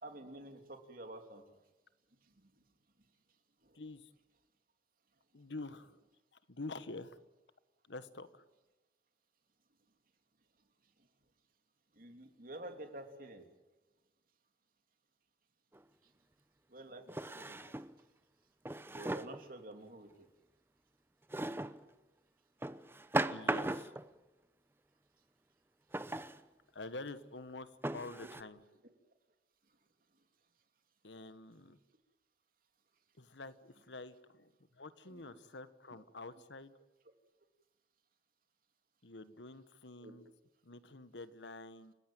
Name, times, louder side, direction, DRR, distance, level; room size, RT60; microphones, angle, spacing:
voice 1, 0.0-1.4 12.0-13.4 16.7-17.6 18.9-20.2 28.2-28.3 35.1-35.4 35.9-36.0 40.0-40.1, right 1 dB, 50° right, 5 dB, 3.2 m, -49 dB
voice 2, 3.7-4.1 5.3-6.0 6.5-7.2 7.9-8.4 23.3-23.9 26.7-28.6 31.0-31.8 33.2-36.7 39.0-40.3 40.6-41.9, left 2 dB, 80° left, 13 dB, 1.4 m, -47 dB
Drawer open or close, 15.7-15.8 17.1-17.9 18.7-19.4 21.3-21.8 22.6-24.1 25.9-26.4 27.1-27.2 27.8-28.4, right 1 dB, 15° right, 0.8 m, -37 dB
30.0 x 16.0 x 9.2 m, 1.1 s
head